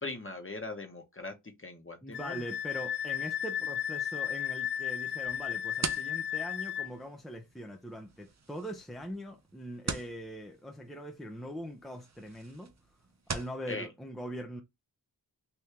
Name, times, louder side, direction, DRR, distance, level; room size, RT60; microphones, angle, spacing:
voice 1, 0.0-2.4 13.7-13.9, left 3 dB, 30° left, 1.1 m, -40 dB
voice 2, 2.0-12.7 13.3-14.6, equal, ahead, 0.6 m, -42 dB
Wind instrument woodwind instrument, 2.1-6.9, left 9 dB, 65° left, 0.5 m, -34 dB
sound 1, 5.3-13.6, right 4 dB, 40° right, 0.7 m, -43 dB
2.9 x 2.7 x 3.5 m
wide cardioid pair, 45°, 43 cm